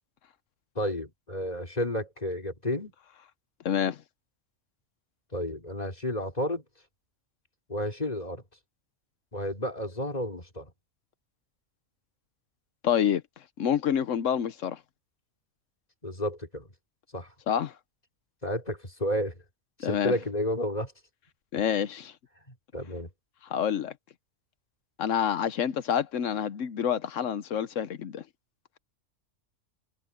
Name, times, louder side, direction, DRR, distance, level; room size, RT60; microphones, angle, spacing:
voice 1, 0.8-2.9 5.3-6.6 7.7-8.4 9.3-10.7 16.0-16.7 17.1-17.3 18.4-19.4 19.8-20.9 22.7-23.1, left 1 dB, 30° left, 4.0 m, -31 dB
voice 2, 3.6-4.0 12.8-13.2 13.6-14.8 17.5-17.7 19.8-20.1 21.5-22.1 23.5-23.9 25.0-28.2, left 9 dB, 85° left, 1.2 m, -27 dB
omnidirectional pair, 1.3 m